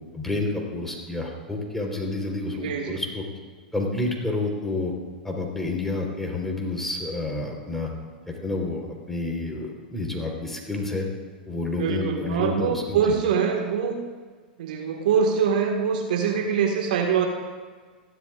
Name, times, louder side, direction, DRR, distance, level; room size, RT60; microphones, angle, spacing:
voice 1, 0.1-3.2 3.7-4.9 5.2-7.9 8.3-11.1 11.5-13.1, left 2 dB, 5° left, -1 dB, 4.0 m, -29 dB
voice 2, 2.5-3.0 11.8-14.0 14.6-17.3, right 6 dB, 60° right, 2 dB, 1.8 m, -24 dB
29.5 x 13.0 x 2.5 m, 1.5 s
figure-of-eight pair, 95°, 5 cm